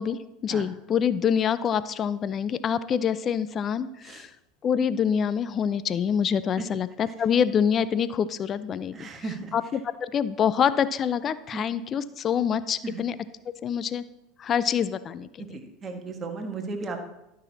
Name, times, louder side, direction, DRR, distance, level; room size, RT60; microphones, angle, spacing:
voice 1, 0.0-4.3 4.6-9.1 9.5-13.1 13.6-14.0 14.4-15.4, left 8 dB, 35° left, 15 dB, 0.5 m, -26 dB
voice 2, 8.9-9.5 11.5-11.6 12.8-13.0 15.5-17.0, right 3 dB, 30° right, 4 dB, 1.6 m, -35 dB
12.5 x 6.2 x 4.2 m, 0.89 s
figure-of-eight pair, 75°, 0 cm